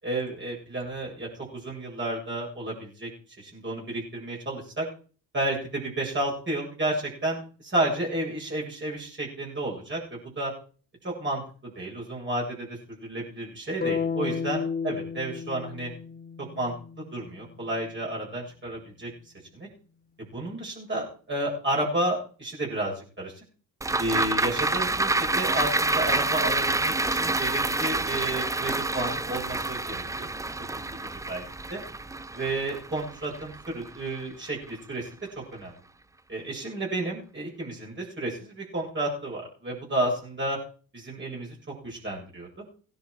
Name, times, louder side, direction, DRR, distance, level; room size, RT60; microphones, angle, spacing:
voice 1, 0.0-3.1 3.4-4.9 5.3-10.5 11.0-15.9 16.5-19.1 19.5-19.7 20.2-23.3 24.0-30.3 30.9-31.4 31.7-31.8 32.3-35.1 35.5-35.8 36.3-40.6 40.9-41.6 41.8-42.6, right 1 dB, 30° right, -3 dB, 7.7 m, -31 dB
sound 1, 13.8-17.9, left 6 dB, 25° left, 1.0 m, -33 dB
sound 2, 23.8-34.3 34.7-34.8, right 2 dB, 10° right, 0.6 m, -28 dB
17.0 x 10.5 x 4.9 m, 0.41 s
cardioid pair, 90°, 40 cm